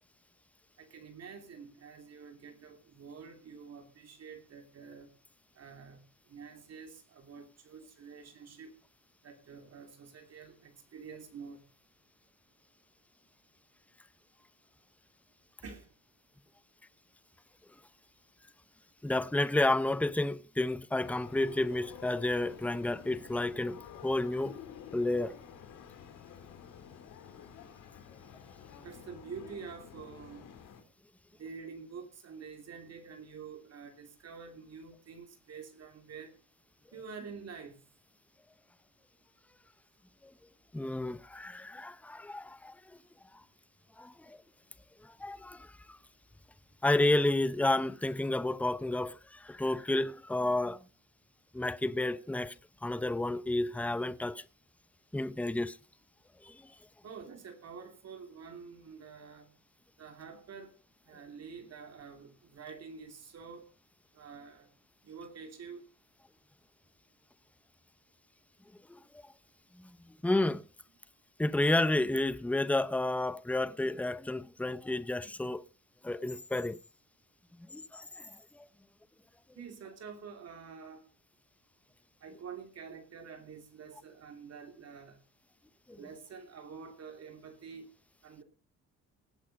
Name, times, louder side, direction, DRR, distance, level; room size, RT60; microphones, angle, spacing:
voice 1, 0.8-5.1 5.5-8.7 9.2-11.7 15.6-15.9 28.8-30.5 31.4-36.3 36.9-37.8 57.0-59.5 60.0-60.7 61.1-63.7 64.1-64.7 65.0-65.8 79.6-81.0 82.2-85.2 85.9-87.9 88.2-88.4, right 6 dB, 55° right, 2.8 m, -48 dB
voice 2, 19.0-24.6 24.9-25.4 40.7-42.8 44.0-44.4 45.0-46.0 46.8-50.8 51.5-52.5 52.8-54.4 55.1-55.8 56.4-56.7 68.9-69.0 69.8-70.0 70.2-70.6 71.4-75.6 76.0-76.8 77.7-78.7 85.9-86.0, left 2 dB, 5° left, 0.8 m, -31 dB
sound 1, 21.0-30.8, left 8 dB, 90° left, 3.5 m, -50 dB
18.0 x 8.6 x 5.3 m
cardioid pair, 90°, 30 cm